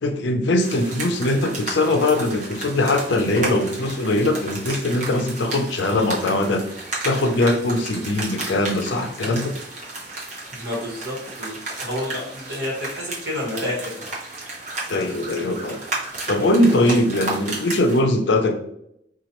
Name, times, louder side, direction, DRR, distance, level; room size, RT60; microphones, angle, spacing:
voice 1, 0.0-6.6 7.0-9.5 14.9-15.8 16.3-18.6, left 1 dB, 75° left, 6 dB, 0.5 m, -21 dB
sound 1, 0.6-18.0, right 2 dB, 40° right, 0.9 m, -33 dB
voice 2, 10.5-14.0, left 1 dB, 65° right, -2 dB, 1.3 m, -29 dB
4.0 x 2.4 x 2.9 m, 0.77 s
head